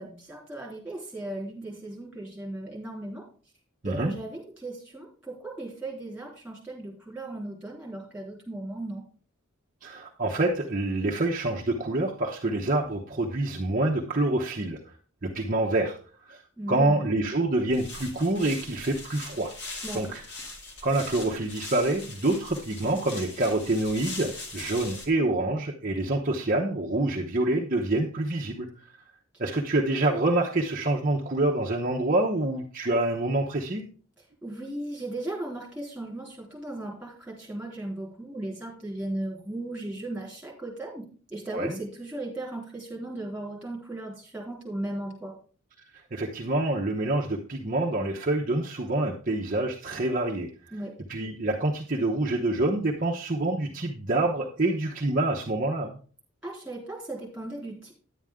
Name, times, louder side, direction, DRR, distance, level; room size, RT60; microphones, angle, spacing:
voice 1, 0.0-3.2 3.8-9.0 16.6-17.0 19.8-20.0 29.4-29.5 34.4-41.0 41.3-45.3 50.7-50.9 56.4-57.9, right 1 dB, 5° right, -3 dB, 3.9 m, -36 dB
voice 2, 9.8-14.8 15.2-16.0 16.2-16.4 16.7-19.5 19.9-20.2 20.8-28.7 29.4-33.8 41.5-41.8 46.1-50.5 51.1-56.0, right 2 dB, 40° right, -1 dB, 0.9 m, -26 dB
sound 1, 17.7-25.1, left 2 dB, 55° left, 2.3 m, -41 dB
10.5 x 8.9 x 3.6 m, 0.40 s
head